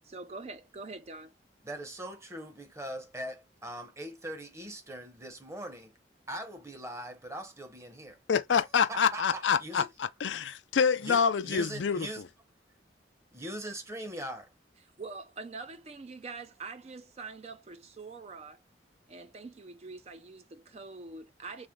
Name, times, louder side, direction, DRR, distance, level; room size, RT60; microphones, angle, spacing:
voice 1, 0.1-1.3 15.0-18.6 19.1-21.7, right 3 dB, 35° right, 0.4 m, -44 dB
voice 2, 1.6-5.9 6.3-8.2 8.9-9.9 11.0-12.2 13.3-14.5, right 1 dB, 15° right, 0.8 m, -41 dB
voice 3, 8.3-12.1, left 6 dB, 85° left, 0.5 m, -27 dB
4.3 x 3.0 x 3.6 m
head